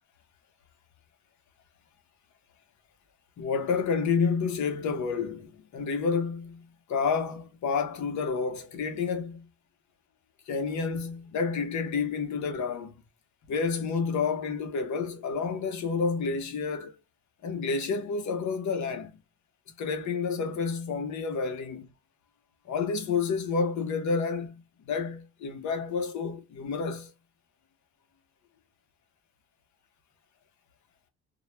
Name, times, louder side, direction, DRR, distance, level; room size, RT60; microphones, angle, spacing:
voice 1, 3.4-9.5 10.5-13.0 13.5-16.9 17.4-19.1 19.8-21.9 22.7-27.1, left 5 dB, 70° left, 0.9 m, -29 dB
2.3 x 2.1 x 3.0 m
cardioid pair, 90°, 30 cm